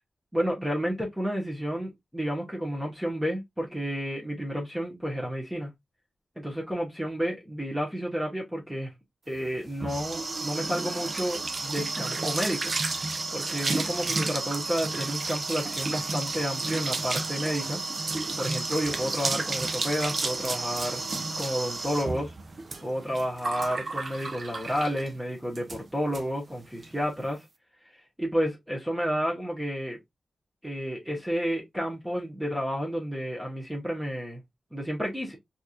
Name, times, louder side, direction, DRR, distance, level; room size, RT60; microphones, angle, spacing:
voice 1, 0.3-5.7 6.4-8.9 9.3-12.7 13.3-17.8 18.1-21.0 21.4-22.3 22.8-27.4 27.8-30.0 30.6-34.4 34.7-35.4, equal, 10° right, 1.3 m, -31 dB
sound 1, 9.4-25.2 25.6-25.8 26.1-26.2 26.5-26.9, right 3 dB, 50° right, 0.7 m, -32 dB
4.5 x 2.8 x 2.4 m
cardioid pair, 65°, 0 cm